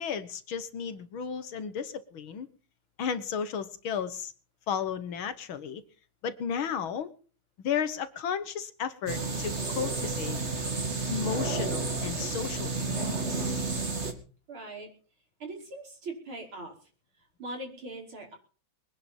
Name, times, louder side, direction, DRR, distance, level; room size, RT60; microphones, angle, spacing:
voice 1, 0.0-2.5 3.0-4.3 4.7-5.8 6.2-7.1 7.6-10.4 11.1-13.5, left 7 dB, 70° left, 12 dB, 2.1 m, -34 dB
sound 1, 9.1-14.1, right 3 dB, 30° right, 2.6 m, -31 dB
voice 2, 14.5-14.9 15.4-16.9 17.2-18.4, right 2 dB, 70° right, 2 dB, 6.1 m, -41 dB
23.0 x 10.5 x 5.4 m, 0.40 s
omnidirectional pair, 2.4 m